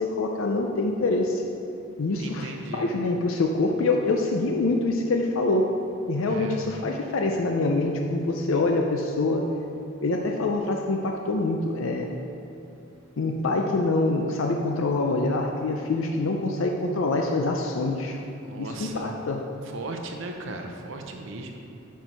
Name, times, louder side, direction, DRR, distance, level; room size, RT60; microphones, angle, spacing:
voice 1, 0.0-1.4 2.0-5.7 6.1-9.4 10.0-12.1 13.2-18.2 18.6-19.4, left 2 dB, 75° left, 2 dB, 0.5 m, -25 dB
voice 2, 2.2-2.9 6.3-6.6 18.4-19.1 19.7-21.6, right 2 dB, 65° right, 3 dB, 0.6 m, -37 dB
9.1 x 4.5 x 4.6 m, 2.9 s
head